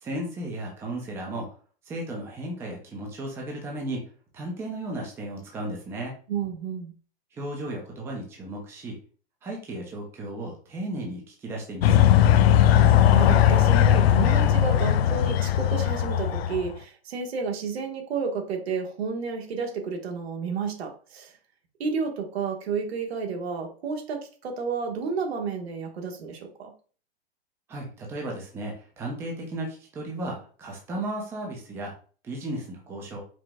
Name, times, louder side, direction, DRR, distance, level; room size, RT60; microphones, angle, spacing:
voice 1, 0.0-1.5 1.9-4.1 4.3-6.2 7.3-9.0 9.4-12.1 27.7-31.9 32.2-33.2, right 1 dB, 10° right, -1 dB, 0.6 m, -35 dB
voice 2, 6.3-6.9 12.8-21.3 21.8-26.7, right 5 dB, 80° right, 2 dB, 1.2 m, -31 dB
sound 1, 11.8-16.7, left 11 dB, 75° left, 0.5 m, -19 dB
4.9 x 2.2 x 3.6 m, 0.41 s
hypercardioid pair, 155°, 31 cm